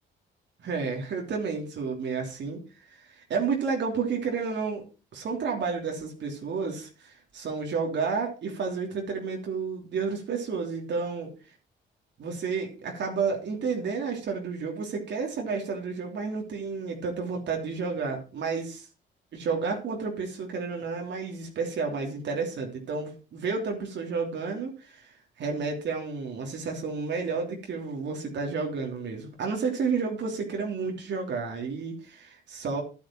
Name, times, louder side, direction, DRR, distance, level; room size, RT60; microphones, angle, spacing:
voice 1, 0.6-2.6 2.9-4.8 5.1-11.3 12.2-18.9 19.3-25.1 25.4-32.8, right 5 dB, 65° right, 1 dB, 3.1 m, -31 dB
10.5 x 9.3 x 4.5 m, 0.33 s
cardioid pair, 90°, 20 cm